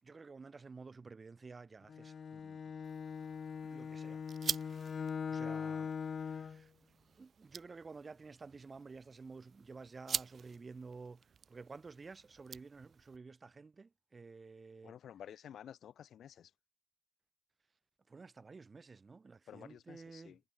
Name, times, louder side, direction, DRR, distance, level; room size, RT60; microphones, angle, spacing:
voice 1, 0.0-2.8 3.6-4.2 5.3-6.7 7.2-14.9 18.1-20.4, right 4 dB, 30° right, 5.5 m, -52 dB
Bowed string instrument, 1.9-6.6, left 6 dB, 45° left, 0.3 m, -41 dB
sound 1, 2.8-13.2, right 7 dB, 50° right, 0.7 m, -46 dB
voice 2, 14.8-16.5 19.5-20.4, left 9 dB, 65° left, 0.9 m, -52 dB
cardioid pair, 90°, 0 cm